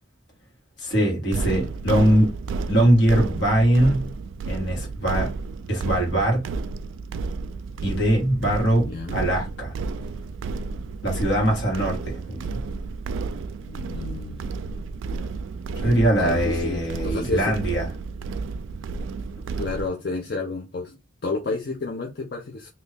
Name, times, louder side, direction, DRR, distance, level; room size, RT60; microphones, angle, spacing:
voice 1, 0.8-2.3 2.7-4.1 4.5-5.3 5.7-6.4 7.8-9.7 11.0-12.4 15.8-17.8, right 1 dB, 70° left, 1.8 m, -21 dB
sound 1, 1.3-19.9, right 4 dB, 80° right, 0.3 m, -32 dB
voice 2, 8.8-9.3 13.7-14.5 15.8-17.6 19.6-21.0 21.2-22.7, left 3 dB, 50° left, 0.6 m, -31 dB
2.8 x 2.6 x 3.4 m
head